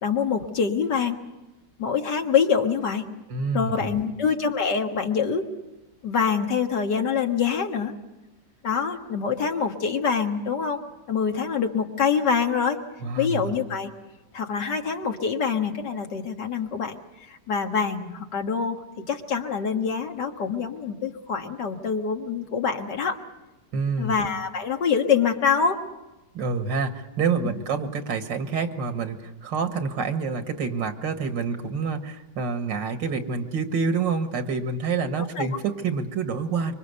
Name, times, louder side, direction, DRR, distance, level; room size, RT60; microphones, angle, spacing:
voice 1, 0.0-1.2 1.8-3.0 3.5-5.4 6.0-7.9 8.6-10.8 11.1-12.8 13.2-13.9 14.3-23.2 24.0-25.8 27.4-27.6 35.4-35.5, left 6 dB, 70° left, 4 dB, 2.2 m, -25 dB
voice 2, 3.3-4.0 13.0-13.5 23.7-24.1 26.3-36.7, right 5 dB, 90° right, 7 dB, 2.2 m, -27 dB
25.0 x 24.5 x 6.9 m, 1.0 s
omnidirectional pair, 1.9 m